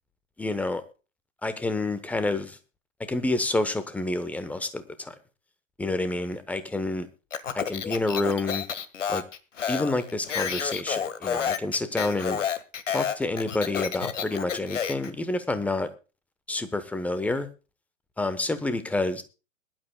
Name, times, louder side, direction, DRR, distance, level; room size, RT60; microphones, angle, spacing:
voice 1, 0.4-0.8 1.4-2.6 3.1-5.1 5.8-7.1 7.5-8.6 9.1-9.2 9.7-12.4 12.9-15.9 16.5-17.5 18.2-19.2, left 2 dB, 5° left, 12 dB, 1.0 m, -28 dB
Speech, 7.3-15.1, left 8 dB, 65° left, 1.7 m, -30 dB
21.5 x 12.0 x 2.3 m, 0.33 s
figure-of-eight pair, 120°, 39 cm